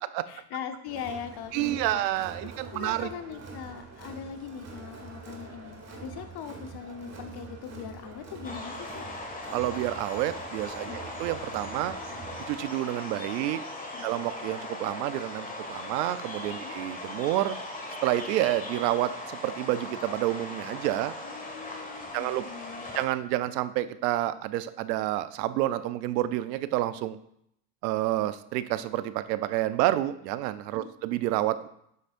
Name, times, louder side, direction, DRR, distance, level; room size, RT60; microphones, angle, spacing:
voice 1, 0.3-2.0 2.7-5.8 6.0-9.1 10.9-11.0 13.9-14.1 16.6-16.7 21.2-22.9 30.8-30.9, left 7 dB, 50° left, 8 dB, 1.0 m, -40 dB
Crowd, 0.9-12.6, right 3 dB, 30° right, 1.7 m, -45 dB
voice 2, 1.5-3.1 9.5-12.0 12.5-13.6 14.0-17.6 18.0-21.1 22.1-22.4 22.9-27.2 27.8-31.7, right 14 dB, 85° right, 14 dB, 0.6 m, -29 dB
sound 1, 8.4-23.1, left 2 dB, 15° left, 1.7 m, -39 dB
8.1 x 6.4 x 2.5 m, 0.73 s
supercardioid pair, 80°, 48 cm